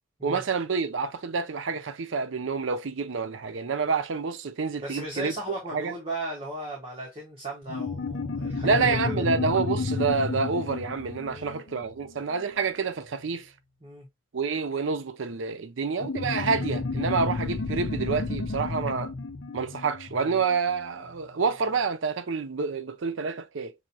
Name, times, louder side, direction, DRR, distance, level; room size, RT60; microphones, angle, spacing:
voice 1, 0.2-5.3 5.7-5.9 8.6-13.5 14.3-19.1 19.5-23.7, right 5 dB, 80° right, 0.5 m, -28 dB
voice 2, 4.8-9.3 11.3-11.7 13.8-14.1, right 1 dB, 30° right, 1.3 m, -37 dB
sound 1, 7.7-12.6 16.0-20.9, left 3 dB, 65° left, 0.6 m, -32 dB
6.2 x 2.7 x 2.8 m
head